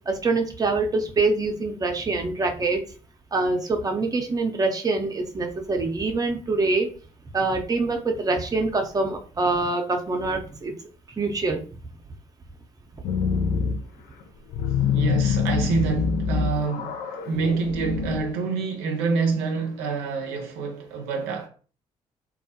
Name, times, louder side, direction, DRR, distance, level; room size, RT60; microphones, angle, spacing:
voice 1, 0.1-2.8 3.3-6.9 7.3-10.7 11.2-11.6, right 3 dB, 25° right, 0.6 m, -25 dB
sound 1, 13.0-13.8 14.2-18.2, left 6 dB, 65° left, 0.4 m, -25 dB
voice 2, 14.9-21.5, right 4 dB, 75° right, 0.5 m, -27 dB
2.3 x 2.0 x 2.8 m
hypercardioid pair, 45°, 16 cm